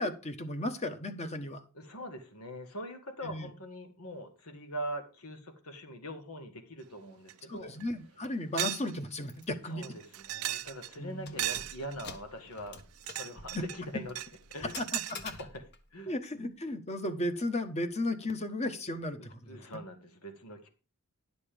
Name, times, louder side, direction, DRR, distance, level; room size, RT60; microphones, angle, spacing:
voice 1, 0.0-1.6 3.2-3.5 7.5-9.9 11.0-11.4 13.5-13.6 14.8-14.9 15.2-15.3 16.1-19.5, left 1 dB, 30° left, 9 dB, 1.2 m, -35 dB
voice 2, 1.7-7.7 9.7-12.8 13.1-14.2 14.5-14.7 15.1-15.6 15.9-16.1 19.2-20.7, equal, 85° left, 7 dB, 2.0 m, -43 dB
sound 1, 7.3-7.4 7.8-7.9 8.6-8.9 9.2-9.3 9.8-11.0 11.4-12.1 12.8-13.8 14.2-15.2, right 15 dB, 75° right, 0.5 m, -36 dB
Keys jangling, 9.3-9.5 9.8-9.9 10.4-10.7 11.1-15.9, left 4 dB, 50° left, 1.4 m, -48 dB
11.0 x 6.9 x 5.2 m, 0.32 s
head